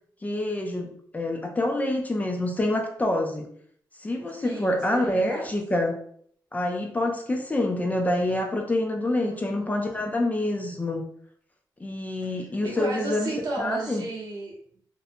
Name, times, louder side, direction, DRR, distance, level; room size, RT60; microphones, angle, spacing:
voice 1, 0.2-3.5 4.0-5.9 6.5-11.0 11.8-14.0, left 1 dB, 20° left, 2 dB, 0.4 m, -27 dB
voice 2, 4.4-5.5 9.1-10.2 12.6-14.8, right 2 dB, 60° right, -3 dB, 0.8 m, -34 dB
2.6 x 2.1 x 2.6 m, 0.62 s
cardioid pair, 85°, 8 cm